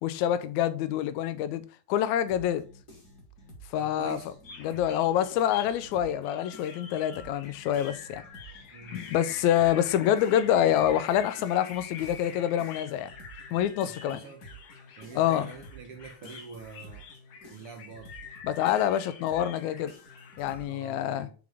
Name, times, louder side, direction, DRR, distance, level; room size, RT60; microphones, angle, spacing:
voice 1, 0.0-2.6 3.7-4.2 4.6-8.2 8.9-13.1 13.5-14.2 15.1-15.5 18.4-19.9 20.4-21.3, left 11 dB, 80° left, 1.7 m, -26 dB
sound 1, 2.3-6.2 6.5-20.7, right 1 dB, 30° left, 1.6 m, -51 dB
voice 2, 3.8-4.4 8.7-9.0 9.7-9.8 13.8-14.4 15.0-17.0 17.5-18.1 20.7-21.3, right 5 dB, 70° right, 1.3 m, -45 dB
sound 2, 4.4-20.6, left 6 dB, 65° left, 2.0 m, -46 dB
9.4 x 3.9 x 3.5 m
omnidirectional pair, 3.8 m